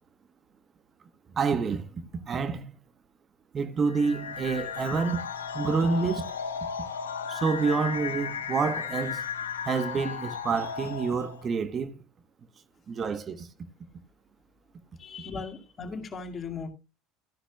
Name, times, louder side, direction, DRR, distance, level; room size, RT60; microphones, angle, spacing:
voice 1, 1.3-1.9 2.3-2.7 3.5-5.3 5.5-6.3 7.3-9.2 9.7-12.0 12.9-13.5, right 5 dB, 35° right, 1.1 m, -28 dB
sound 1, 3.9-11.5, left 7 dB, 85° left, 1.1 m, -35 dB
voice 2, 15.0-16.7, left 5 dB, 35° left, 2.2 m, -37 dB
14.0 x 9.9 x 2.3 m
hypercardioid pair, 70°, 0 cm